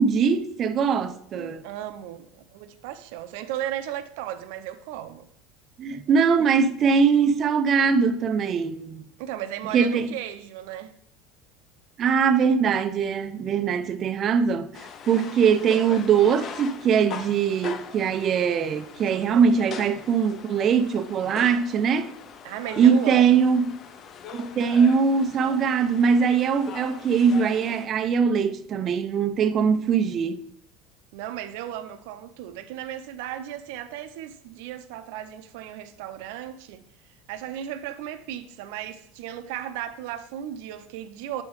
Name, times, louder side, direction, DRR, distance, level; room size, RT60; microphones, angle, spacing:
voice 1, 0.0-1.6 5.8-9.0 9.7-10.1 12.0-14.8 15.1-22.1 22.8-23.7 24.3-30.4, right 6 dB, 30° right, 0.4 m, -21 dB
voice 2, 1.3-5.3 9.2-10.9 19.1-19.5 22.4-23.5 31.1-36.8 37.3-41.4, right 11 dB, 70° right, 0.6 m, -35 dB
sound 1, 14.7-27.9, left 6 dB, 30° left, 0.4 m, -41 dB
8.4 x 3.2 x 4.7 m
cardioid pair, 165°, 0 cm